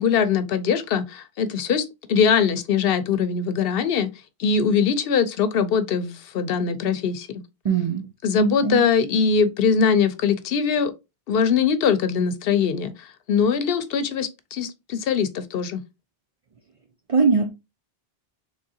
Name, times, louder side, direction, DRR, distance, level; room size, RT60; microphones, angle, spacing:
voice 1, 0.0-4.1 4.4-7.3 8.2-10.9 11.3-15.8, left 6 dB, 70° left, 0.7 m, -22 dB
voice 2, 7.6-8.1 8.4-8.8 17.1-17.5, right 5 dB, 55° right, 0.4 m, -21 dB
3.6 x 3.3 x 2.7 m
omnidirectional pair, 1.0 m